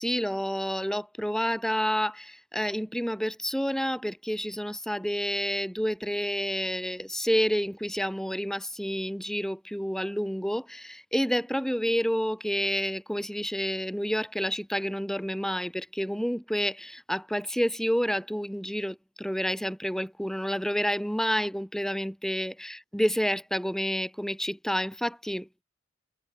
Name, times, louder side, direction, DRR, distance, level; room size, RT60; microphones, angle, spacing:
voice 1, 0.0-25.5, equal, ahead, 6.3 m, -29 dB
head